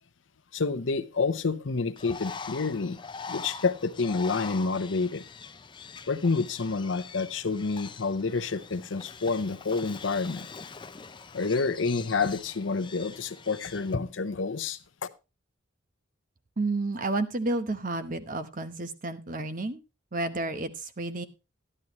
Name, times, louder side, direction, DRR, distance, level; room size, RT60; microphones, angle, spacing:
voice 1, 0.5-3.0 3.3-5.2 6.1-10.5 11.3-14.8, left 4 dB, 75° left, 0.7 m, -28 dB
Bird, 2.0-14.0, left 5 dB, 25° left, 0.5 m, -43 dB
voice 2, 16.6-19.8 20.1-21.3, right 2 dB, 45° right, 1.0 m, -31 dB
12.0 x 11.0 x 3.0 m
head